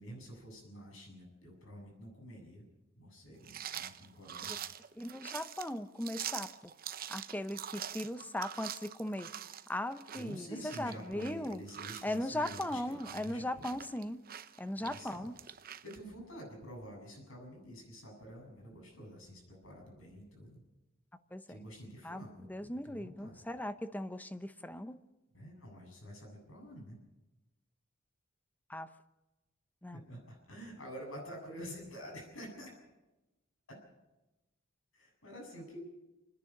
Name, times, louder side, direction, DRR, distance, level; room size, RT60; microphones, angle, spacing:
voice 1, 0.0-2.6 3.0-4.6 10.1-13.8 14.8-15.3 15.8-20.6 21.5-23.4 25.3-27.0 29.9-32.7 33.7-33.8 34.9-35.8, equal, 90° left, 1 dB, 7.9 m, -48 dB
sound 1, 3.4-16.0, right 10 dB, 45° right, 0.8 m, -45 dB
voice 2, 4.9-6.7 7.1-9.3 9.7-11.6 12.0-14.3 14.6-15.4 21.3-21.6 22.0-22.2 22.5-25.0 28.7-28.9 29.8-30.0, left 1 dB, 10° left, 11 dB, 0.8 m, -38 dB
29.0 x 10.5 x 8.6 m, 1.0 s
head